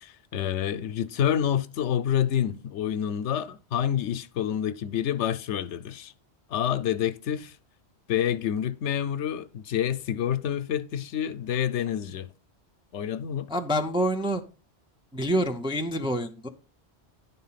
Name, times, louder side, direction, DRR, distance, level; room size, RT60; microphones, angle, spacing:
voice 1, 0.0-6.1 6.5-7.5 8.1-12.3 12.9-13.5, left 9 dB, 90° left, 0.9 m, -28 dB
voice 2, 13.5-14.4 15.1-16.5, equal, 5° right, 0.6 m, -27 dB
11.0 x 4.2 x 5.7 m
omnidirectional pair, 1.1 m